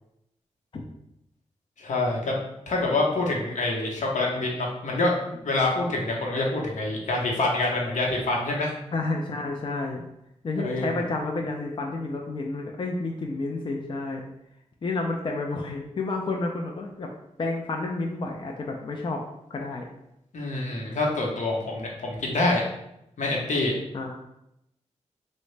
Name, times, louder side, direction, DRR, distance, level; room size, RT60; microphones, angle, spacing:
voice 1, 1.8-2.4 2.7-8.7 10.6-10.9 20.3-22.6 23.2-23.7, left 2 dB, 85° left, -2 dB, 0.8 m, -26 dB
voice 2, 8.9-10.0 10.4-14.2 14.8-17.1 17.4-19.2 19.5-19.8 23.9-24.2, left 3 dB, 40° left, 1 dB, 0.4 m, -30 dB
3.6 x 2.1 x 3.2 m, 0.81 s
wide cardioid pair, 105°, 12 cm